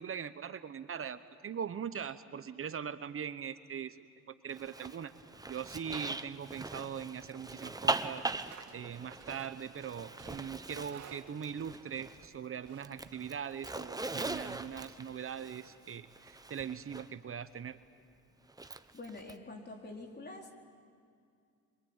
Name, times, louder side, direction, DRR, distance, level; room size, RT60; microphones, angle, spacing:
voice 1, 0.0-4.1 4.4-5.1 5.5-17.8, right 7 dB, 45° right, 12 dB, 1.0 m, -41 dB
Zipper (clothing), 4.5-12.4 12.7-17.1 18.5-19.3, right 2 dB, 10° right, 1.0 m, -41 dB
Livestock farm animals working animals, 8.1-13.8, right 8 dB, 70° right, 2.6 m, -58 dB
voice 2, 18.9-20.5, left 2 dB, 35° left, 2 dB, 4.1 m, -46 dB
26.5 x 24.0 x 8.9 m, 2.3 s
cardioid pair, 90°, 30 cm